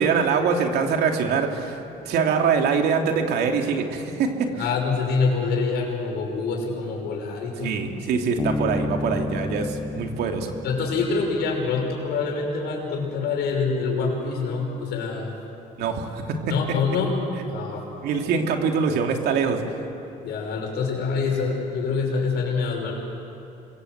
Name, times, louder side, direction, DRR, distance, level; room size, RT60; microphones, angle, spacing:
voice 1, 0.0-1.8 2.0-4.5 7.6-10.5 15.8-16.4 18.0-19.6, right 5 dB, 75° right, 3 dB, 2.8 m, -23 dB
voice 2, 4.6-7.9 10.6-15.3 16.5-17.1 17.5-17.8 20.2-22.9, left 4 dB, 80° left, 0 dB, 6.3 m, -26 dB
Bass guitar, 8.4-11.9, left 3 dB, 10° left, 0.6 m, -31 dB
27.0 x 22.0 x 8.1 m, 2.8 s
cardioid pair, 110°, 17 cm